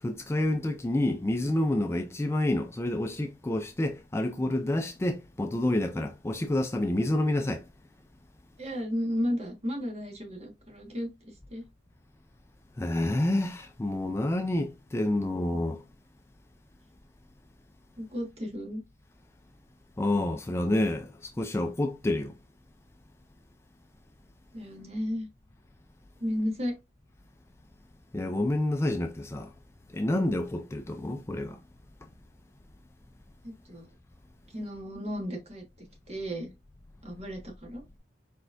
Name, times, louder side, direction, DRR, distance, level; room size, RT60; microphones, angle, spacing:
voice 1, 0.0-7.6 12.8-15.8 20.0-22.3 28.1-29.5 29.9-31.6, left 1 dB, 15° left, 0.3 m, -28 dB
voice 2, 8.6-11.6 18.0-18.8 24.5-25.3 26.2-26.8 33.4-33.9 34.5-35.6 36.1-36.5 37.0-37.8, equal, 35° right, 1.4 m, -34 dB
4.5 x 4.4 x 2.5 m
head